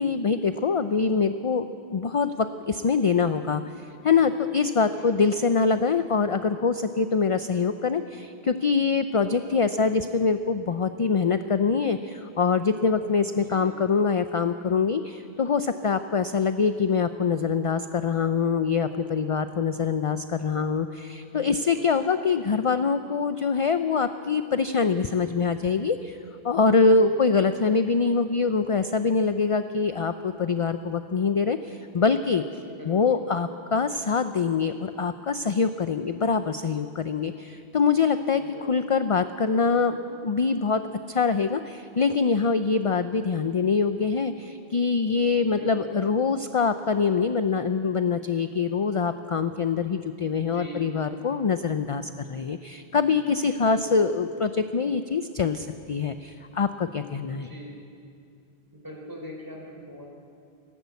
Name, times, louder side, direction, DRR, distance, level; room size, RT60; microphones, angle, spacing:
voice 1, 0.0-26.2 26.4-38.4 38.7-40.8 41.1-57.5, left 5 dB, 40° left, 10 dB, 0.5 m, -24 dB
voice 2, 4.8-5.4 9.5-10.1 13.4-13.7 21.3-21.9 26.9-27.5 32.6-33.2 38.4-38.6 38.9-39.0 45.5-46.0 50.3-50.8 53.6-54.1 57.3-57.7 58.7-60.1, equal, 20° right, 0 dB, 3.6 m, -42 dB
19.5 x 16.5 x 8.3 m, 2.5 s
omnidirectional pair, 1.0 m